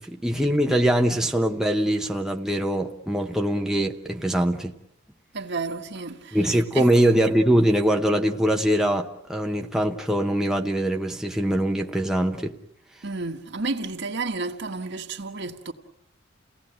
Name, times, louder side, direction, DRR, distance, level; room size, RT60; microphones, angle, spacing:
voice 1, 0.0-4.7 6.3-12.5, right 1 dB, 5° right, 0.9 m, -23 dB
voice 2, 5.3-6.4 6.7-6.9 13.0-15.7, right 3 dB, 60° right, 1.5 m, -31 dB
29.5 x 17.5 x 9.1 m
head